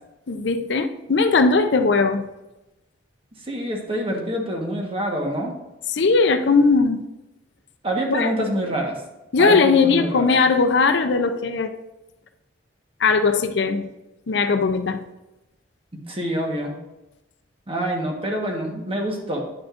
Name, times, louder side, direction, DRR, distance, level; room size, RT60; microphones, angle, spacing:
voice 1, 0.3-2.2 5.9-7.0 8.1-8.3 9.3-11.7 13.0-13.9 14.3-15.0, left 4 dB, 65° left, 7 dB, 0.5 m, -19 dB
voice 2, 3.5-5.5 7.8-9.0 9.4-10.4 15.9-16.7 17.7-19.4, right 1 dB, 30° right, 0 dB, 1.3 m, -26 dB
9.7 x 6.0 x 2.5 m, 0.98 s
head